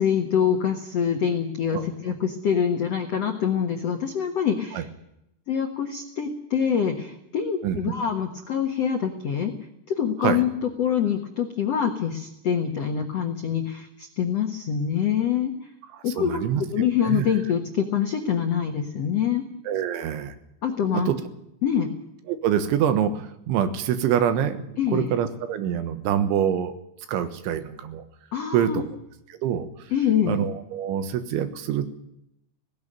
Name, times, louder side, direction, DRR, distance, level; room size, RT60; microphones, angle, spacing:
voice 1, 0.0-4.9 5.5-9.5 9.9-10.5 10.8-15.5 16.0-16.4 16.7-19.4 20.6-21.1 21.6-21.9 24.8-25.1 28.3-28.8 29.9-30.4, left 8 dB, 85° left, 4 dB, 1.4 m, -25 dB
voice 2, 1.7-2.1 4.7-4.9 7.6-7.8 10.2-10.4 15.9-17.3 19.7-20.4 20.9-21.2 22.3-26.7 27.1-28.0 28.5-28.9 29.3-29.7 30.3-31.9, right 9 dB, 85° right, 10 dB, 3.8 m, -25 dB
18.0 x 16.0 x 8.8 m, 0.81 s
omnidirectional pair, 5.3 m